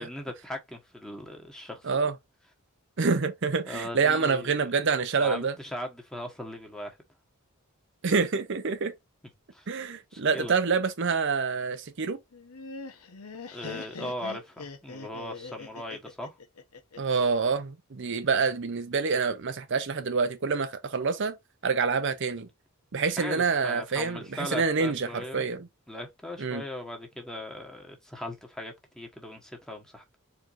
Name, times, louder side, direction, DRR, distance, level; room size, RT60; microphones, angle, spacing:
voice 1, 0.0-2.1 3.7-4.7 5.2-7.0 9.5-9.7 10.1-10.5 13.5-16.3 23.0-25.4 25.9-30.2, left 1 dB, 5° left, 1.3 m, -39 dB
voice 2, 3.0-5.5 8.0-8.9 9.7-12.2 17.0-21.3 21.6-22.5 22.9-25.7 26.4-26.6, right 5 dB, 55° right, 0.6 m, -27 dB
Laughter, 12.3-17.4, left 4 dB, 90° left, 1.0 m, -42 dB
4.6 x 4.3 x 2.5 m
head